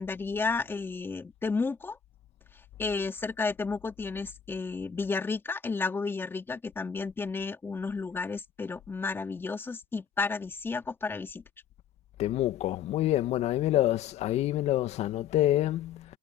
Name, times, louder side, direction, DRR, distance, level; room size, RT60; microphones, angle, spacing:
voice 1, 0.0-2.0 2.8-11.4, left 4 dB, 10° left, 2.6 m, -32 dB
voice 2, 12.2-16.0, left 14 dB, 35° left, 1.9 m, -27 dB
hypercardioid pair, 125°, 18 cm